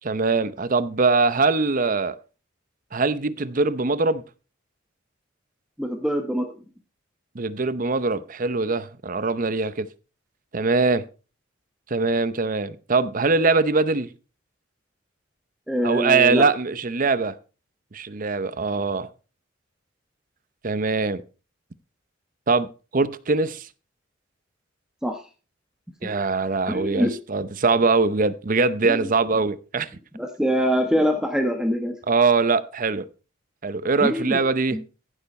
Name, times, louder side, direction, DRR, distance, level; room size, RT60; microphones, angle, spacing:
voice 1, 0.0-2.1 2.9-4.2 7.3-9.9 10.5-11.0 11.9-14.1 15.8-17.4 17.9-19.1 20.6-21.2 22.5-23.7 26.0-29.9 32.1-33.1 33.6-34.8, right 4 dB, 40° right, 0.7 m, -22 dB
voice 2, 5.8-6.5 15.7-16.5 25.0-25.2 26.0-26.1 26.7-27.1 28.8-29.0 30.1-32.0 34.0-34.4 34.7-34.8, equal, 5° right, 1.1 m, -24 dB
15.0 x 6.9 x 4.3 m
head